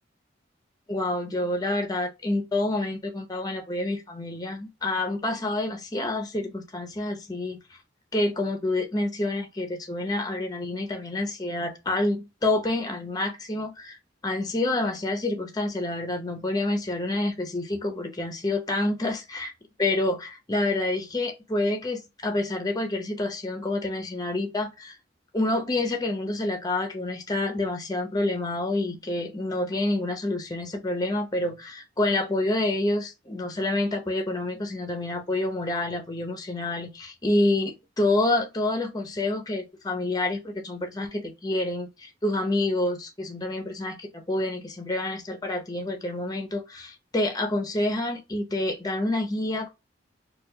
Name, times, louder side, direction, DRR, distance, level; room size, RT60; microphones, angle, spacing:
voice 1, 0.9-7.6 8.1-14.0 14.2-19.5 19.8-25.0 25.3-49.7, left 2 dB, 20° left, 0.7 m, -28 dB
4.3 x 2.4 x 2.7 m
head